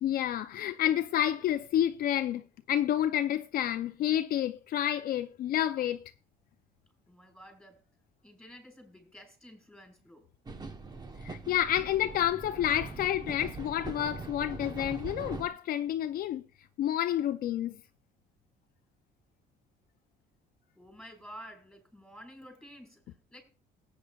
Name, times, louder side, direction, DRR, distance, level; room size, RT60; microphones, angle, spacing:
voice 1, 0.0-6.1 11.2-16.4 16.8-17.8, left 11 dB, 60° left, 0.5 m, -29 dB
voice 2, 7.1-7.8 8.2-10.3 20.8-23.0 23.3-23.4, equal, 5° left, 4.4 m, -51 dB
sound 1, 10.5-15.5, right 3 dB, 25° right, 0.9 m, -42 dB
18.0 x 8.6 x 2.3 m
cardioid pair, 110°, 17 cm